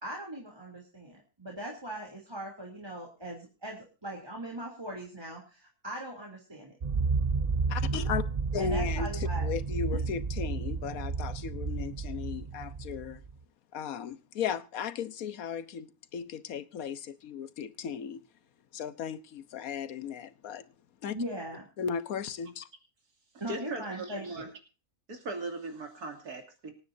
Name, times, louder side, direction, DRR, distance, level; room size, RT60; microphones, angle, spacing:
voice 1, 0.0-6.7 8.6-9.5 9.9-10.0 21.1-21.6 23.4-24.5, right 1 dB, 15° right, 3.1 m, -40 dB
sound 1, 6.8-13.3, right 4 dB, 55° right, 0.4 m, -31 dB
voice 2, 7.7-8.2 8.5-13.2 13.7-18.2 18.7-20.7 21.0-21.2 21.8-22.7, left 7 dB, 70° left, 1.4 m, -36 dB
voice 3, 23.5-24.5 25.1-26.7, right 2 dB, 85° right, 3.1 m, -39 dB
26.0 x 9.5 x 2.7 m
omnidirectional pair, 1.6 m